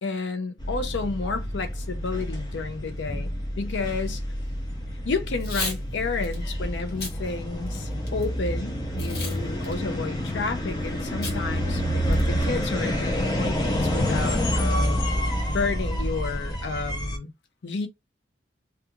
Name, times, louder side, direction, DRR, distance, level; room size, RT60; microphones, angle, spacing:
voice 1, 0.0-4.2 5.0-15.0 15.5-17.3 17.6-17.9, left 4 dB, 85° left, 0.5 m, -31 dB
sound 1, 0.6-17.2, equal, 25° left, 0.5 m, -28 dB
Packing tape duct tape / Tearing, 5.3-5.8 6.2-6.4 6.9-7.1 7.7-8.2 9.0-9.4 9.6-9.7 11.2-11.4 11.7-11.8 12.1-12.5, left 3 dB, 60° left, 1.1 m, -33 dB
2.3 x 2.3 x 2.9 m
head